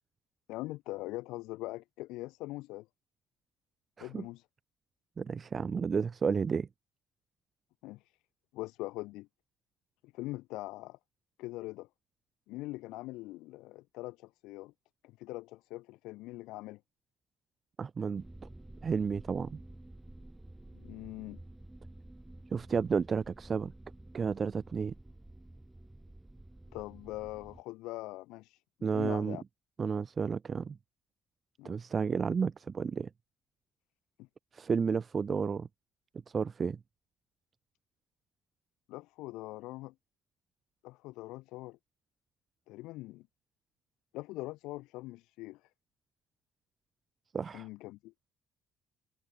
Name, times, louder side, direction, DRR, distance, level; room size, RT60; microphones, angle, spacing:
voice 1, 0.5-2.9 4.0-4.4 7.8-8.0 8.5-9.3 10.1-11.0 11.4-11.9 12.5-14.7 15.0-16.8 20.7-21.4 26.7-28.6 28.9-29.4 31.6-31.8 34.2-34.3 38.9-39.9 40.8-41.8 42.7-43.3 44.1-45.6 47.5-48.1, left 19 dB, 70° left, 0.4 m, -42 dB
voice 2, 5.2-6.7 17.8-18.2 18.8-19.6 22.5-23.7 24.1-25.0 28.8-29.4 29.8-30.8 31.6-33.1 34.5-35.7 36.3-36.8 47.3-47.7, right 6 dB, 40° right, 0.4 m, -32 dB
sound 1, 18.2-27.6, right 1 dB, 10° right, 1.6 m, -51 dB
hypercardioid pair, 50°, 0 cm